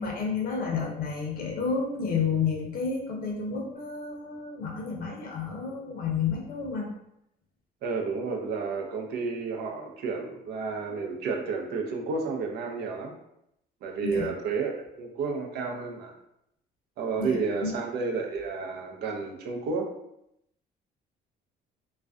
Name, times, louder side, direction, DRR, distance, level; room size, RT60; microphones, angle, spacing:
voice 1, 0.0-6.9 14.0-14.3 17.2-17.8, left 5 dB, 60° left, 0 dB, 0.6 m, -30 dB
voice 2, 7.8-13.1 13.8-16.1 17.0-19.9, right 4 dB, 75° right, 1 dB, 0.5 m, -31 dB
2.3 x 2.1 x 2.4 m, 0.79 s
cardioid pair, 110°, 17 cm